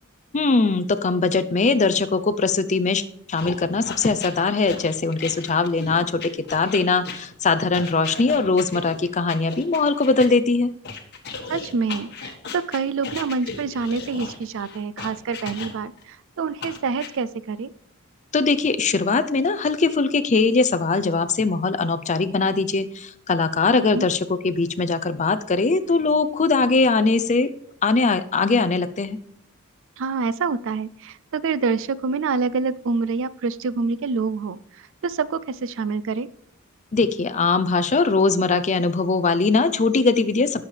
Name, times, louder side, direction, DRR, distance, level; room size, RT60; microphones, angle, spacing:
voice 1, 0.3-3.0 3.3-6.2 6.5-10.7 18.3-27.5 27.8-29.2 36.9-40.7, left 3 dB, 35° left, 12 dB, 0.5 m, -21 dB
sound 1, 3.4-10.3 10.8-16.0 16.6-17.1, left 5 dB, 50° left, 1.5 m, -36 dB
voice 2, 11.5-17.7 23.8-24.1 30.0-34.6 35.0-36.3, right 4 dB, 60° right, 17 dB, 0.4 m, -26 dB
18.0 x 7.1 x 3.3 m, 0.71 s
head